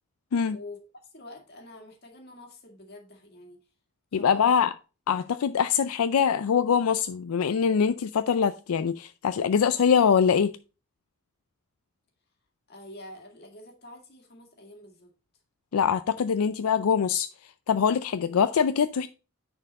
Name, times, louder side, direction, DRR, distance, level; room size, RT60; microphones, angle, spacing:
voice 1, 0.5-3.6 4.1-4.5 12.7-15.1, left 1 dB, 45° left, 2.0 m, -46 dB
voice 2, 4.1-4.7 5.1-10.5 15.7-17.3 17.7-19.1, left 7 dB, 80° left, 0.4 m, -23 dB
9.8 x 4.6 x 4.0 m
head